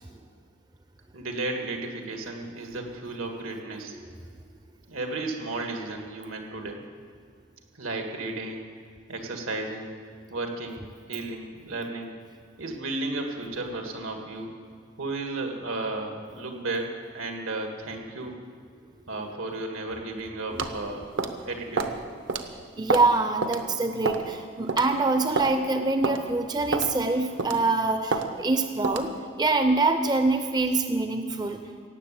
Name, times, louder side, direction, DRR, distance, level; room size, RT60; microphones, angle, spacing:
voice 1, 1.1-4.0 4.9-6.8 7.8-8.7 9.1-10.0 10.3-12.1 12.6-14.5 15.0-18.4 19.1-21.1 21.5-21.9 27.3-27.4, right 2 dB, 85° right, 3 dB, 2.0 m, -34 dB
sound 1, 20.6-20.8 21.2-21.4 21.8-22.0 22.3-22.4 22.9-23.1 23.4-23.6 24.1-24.3 24.7-24.9 25.4-25.5 26.0-26.2 26.7-26.9 27.4-27.6 28.1-28.3 28.8-29.1, right 4 dB, 65° right, 0.9 m, -27 dB
voice 2, 22.8-29.1 29.4-31.6, right 3 dB, 20° right, 7 dB, 0.5 m, -25 dB
16.5 x 7.5 x 8.6 m, 2.2 s
head